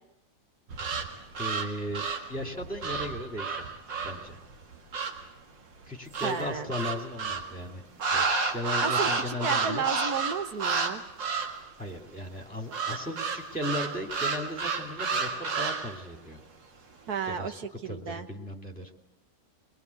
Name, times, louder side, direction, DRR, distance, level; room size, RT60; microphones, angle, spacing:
sound 1, 0.7-5.3 6.1-7.5 8.0-10.9 11.2-11.6 12.7-16.0, right 4 dB, 80° right, 2.6 m, -31 dB
voice 1, 1.4-2.0 2.3-3.7 4.0-4.4 5.9-7.8 8.1-9.8 11.8-16.4 17.3-18.9, left 1 dB, 5° left, 2 dB, 2.5 m, -36 dB
voice 2, 6.2-6.7 8.8-11.0 17.1-18.3, right 6 dB, 60° right, 8 dB, 1.6 m, -33 dB
24.0 x 21.0 x 8.3 m, 0.90 s
omnidirectional pair, 2.0 m